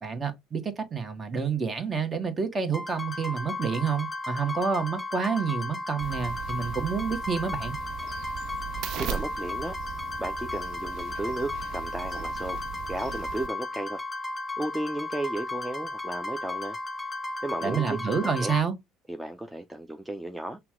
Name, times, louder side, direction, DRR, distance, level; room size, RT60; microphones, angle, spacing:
voice 1, 0.0-7.8 17.6-18.7, right 6 dB, 30° right, 1.3 m, -29 dB
sound 1, 2.7-18.6, left 2 dB, 15° left, 1.5 m, -35 dB
sound 2, 6.0-13.5, right 10 dB, 55° right, 0.3 m, -38 dB
voice 2, 9.0-9.7 10.2-12.6 12.9-14.0 14.6-16.8 17.4-18.5 19.1-20.6, right 1 dB, 10° right, 0.6 m, -34 dB
5.7 x 2.3 x 3.6 m
hypercardioid pair, 60°, 0 cm